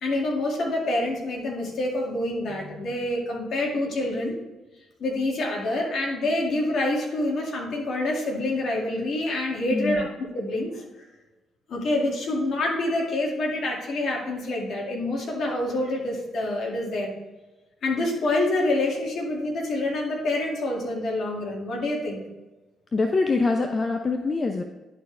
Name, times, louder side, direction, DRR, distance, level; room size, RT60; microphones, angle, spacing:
voice 1, 0.0-4.4 5.0-10.8 11.7-17.1 17.8-22.2, left 2 dB, 65° left, -1 dB, 2.1 m, -27 dB
voice 2, 9.7-10.1 22.9-24.6, left 3 dB, 40° left, 5 dB, 0.7 m, -24 dB
11.0 x 4.4 x 3.3 m, 1.1 s
hypercardioid pair, 50°, 0 cm